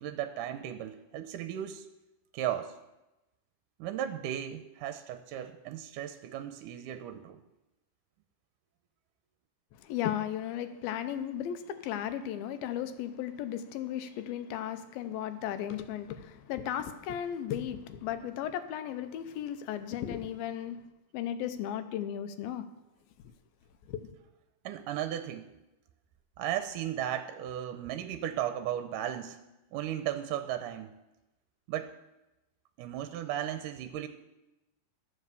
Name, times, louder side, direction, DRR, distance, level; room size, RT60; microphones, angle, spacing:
voice 1, 0.0-1.9 2.3-2.7 3.8-7.4 24.6-25.5 26.4-29.4 29.7-30.9 31.7-31.9 32.8-34.1, right 11 dB, 75° right, 9 dB, 2.0 m, -35 dB
voice 2, 9.8-20.8 21.1-22.6 23.9-24.1, left 10 dB, 85° left, 10 dB, 2.6 m, -35 dB
13.0 x 7.4 x 6.8 m, 0.98 s
omnidirectional pair, 4.3 m